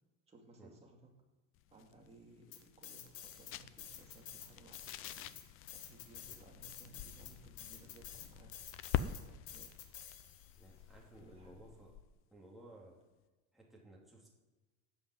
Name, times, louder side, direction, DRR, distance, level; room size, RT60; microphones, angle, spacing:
voice 1, 0.3-1.1 1.7-5.3 5.7-8.5 9.2-9.7 10.7-10.9 11.2-11.6, right 2 dB, 15° right, 0 dB, 2.2 m, -61 dB
sound 1, 1.5-12.2, left 10 dB, 35° left, 0.5 m, -46 dB
sound 2, 2.5-3.5 3.8-10.6, left 10 dB, 85° left, 2.3 m, -50 dB
voice 2, 10.6-11.9 12.3-13.0 13.5-14.3, right 1 dB, ahead, -4 dB, 2.6 m, -57 dB
13.5 x 5.6 x 9.4 m, 1.2 s
cardioid pair, 160°, 39 cm